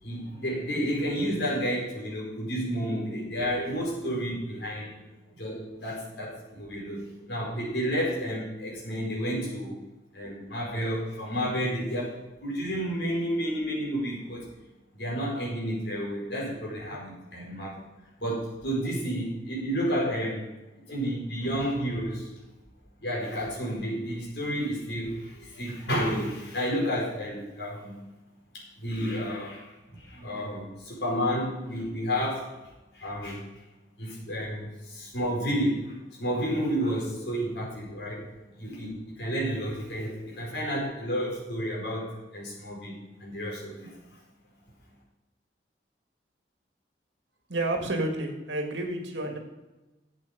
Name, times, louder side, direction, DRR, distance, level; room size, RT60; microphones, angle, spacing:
voice 1, 0.0-5.1 5.4-9.7 10.1-14.5 14.9-17.9 18.2-20.4 20.8-22.3 23.0-28.0 28.5-32.5 32.9-33.4 34.0-38.3 38.5-44.2, equal, 70° left, -4 dB, 4.9 m, -31 dB
voice 2, 47.5-49.4, right 2 dB, 80° right, 3 dB, 2.1 m, -30 dB
12.0 x 8.2 x 5.2 m, 1.1 s
head